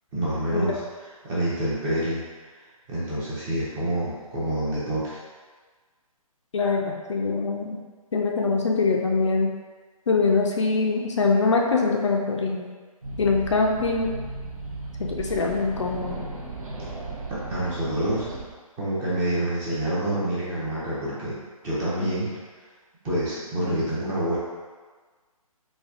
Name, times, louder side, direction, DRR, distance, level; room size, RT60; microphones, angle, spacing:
voice 1, 0.1-0.8 1.2-2.2 2.9-5.2 17.3-18.3 18.8-21.4 21.6-22.3 23.0-24.4, right 1 dB, 10° right, -9 dB, 0.6 m, -27 dB
voice 2, 6.5-7.8 8.1-9.5 10.1-12.7 13.2-14.1 15.0-16.2 22.0-22.1, left 4 dB, 50° left, 0 dB, 0.4 m, -23 dB
sound 1, 13.0-18.4, right 3 dB, 65° right, 0.8 m, -35 dB
4.1 x 2.3 x 2.5 m, 1.4 s
figure-of-eight pair, 135°, 19 cm